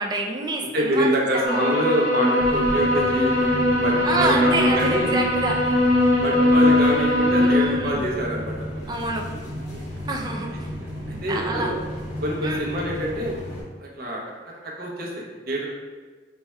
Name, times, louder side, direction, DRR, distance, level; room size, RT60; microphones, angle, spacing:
voice 1, 0.0-1.6 4.0-5.6 7.4-8.0 8.9-9.3 10.1-10.7 11.3-11.7 12.4-12.6, right 2 dB, 25° right, 0 dB, 0.4 m, -27 dB
voice 2, 0.7-5.2 6.2-8.9 10.8-10.9 11.2-11.8 12.2-13.4 13.8-14.2 14.8-15.7, equal, 55° right, -2 dB, 0.7 m, -26 dB
sound 1, 1.4-7.6, left 1 dB, 75° left, 1.4 m, -20 dB
sound 2, 2.4-13.6, equal, 40° left, 0.7 m, -34 dB
3.3 x 2.2 x 4.2 m, 1.4 s
head